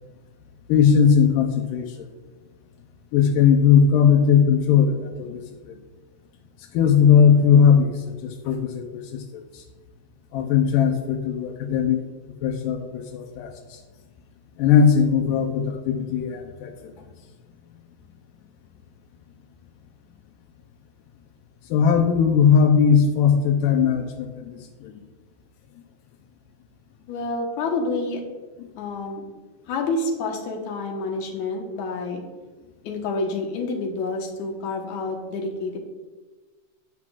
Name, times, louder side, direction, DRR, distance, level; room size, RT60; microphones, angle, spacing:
voice 1, 0.7-2.1 3.1-5.8 6.7-9.6 10.3-12.0 12.4-13.8 14.6-16.9 21.7-24.9 28.6-28.7, left 7 dB, 85° left, 4 dB, 2.3 m, -19 dB
voice 2, 27.1-28.2 28.8-29.2 29.7-32.2 32.8-35.8, left 3 dB, 65° left, 1 dB, 2.4 m, -28 dB
18.0 x 6.0 x 2.4 m, 1.3 s
omnidirectional pair, 3.8 m